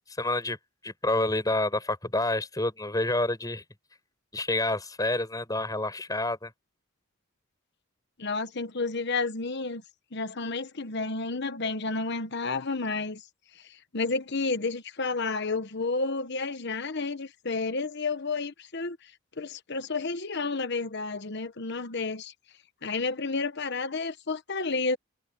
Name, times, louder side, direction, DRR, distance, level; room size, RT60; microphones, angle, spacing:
voice 1, 0.2-0.6 0.8-3.6 4.3-6.5, left 2 dB, 20° left, 5.3 m, -28 dB
voice 2, 8.2-9.8 10.1-13.2 13.5-19.1 19.4-22.3 22.8-25.0, left 3 dB, 55° left, 1.2 m, -31 dB
head